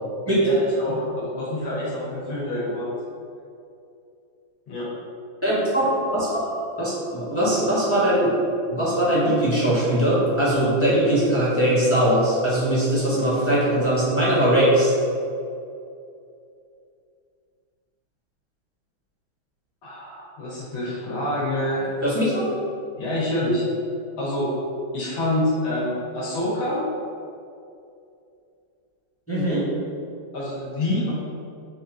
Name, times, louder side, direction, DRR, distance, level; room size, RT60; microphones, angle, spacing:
voice 1, 0.4-2.9 4.7-4.9 19.8-21.9 23.0-23.7 24.2-24.5 24.9-26.8 30.3-31.1, left 1 dB, 70° left, -7 dB, 2.1 m, -27 dB
voice 2, 5.4-6.5 6.8-8.3 8.7-14.9 22.0-22.5 29.3-29.7, right 1 dB, 10° left, -9 dB, 0.9 m, -21 dB
5.0 x 2.8 x 3.7 m, 2.5 s
omnidirectional pair, 2.3 m